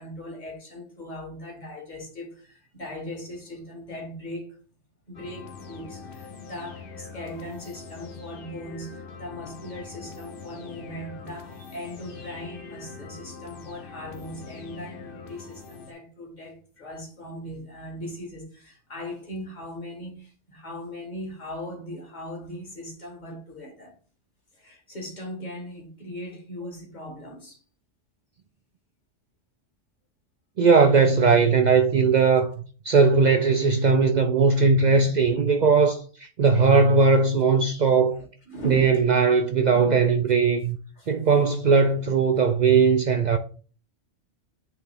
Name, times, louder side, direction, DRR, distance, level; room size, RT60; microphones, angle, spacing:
voice 1, 0.0-4.6 5.1-24.0 24.5-27.6 38.2-39.0 41.0-41.1, equal, 35° left, 1.7 m, -39 dB
sound 1, 5.1-15.9, left 5 dB, 55° left, 0.9 m, -43 dB
voice 2, 30.6-32.5 32.8-38.2 38.7-40.8 41.1-43.4, right 4 dB, 60° right, 0.4 m, -19 dB
8.6 x 3.3 x 3.5 m
omnidirectional pair, 1.2 m